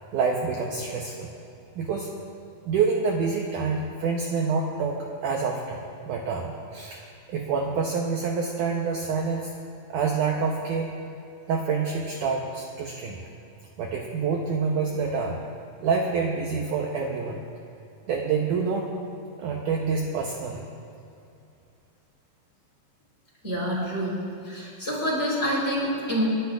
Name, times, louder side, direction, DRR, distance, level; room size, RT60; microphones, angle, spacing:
voice 1, 0.1-1.3 1.8-2.1 2.7-7.0 7.3-9.5 9.9-10.9 11.5-13.2 13.8-15.4 15.8-17.4 18.1-18.9 19.4-20.7 23.8-23.9, right 5 dB, 75° right, 0 dB, 2.0 m, -27 dB
voice 2, 23.4-24.2 24.5-26.2, equal, 15° left, -6 dB, 3.9 m, -27 dB
29.5 x 12.0 x 2.5 m, 2.6 s
omnidirectional pair, 4.5 m